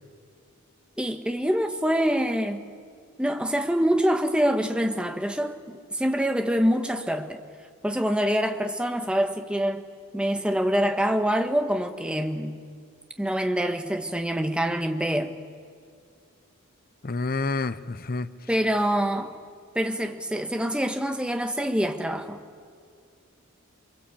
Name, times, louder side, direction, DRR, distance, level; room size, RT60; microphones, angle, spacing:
voice 1, 1.0-2.7 3.2-7.4 7.8-9.9 10.1-12.6 13.2-15.3 18.5-19.3 19.7-22.4, equal, 5° right, 1.5 m, -25 dB
voice 2, 17.0-18.3, left 3 dB, 40° left, 0.7 m, -28 dB
28.5 x 22.5 x 8.6 m
head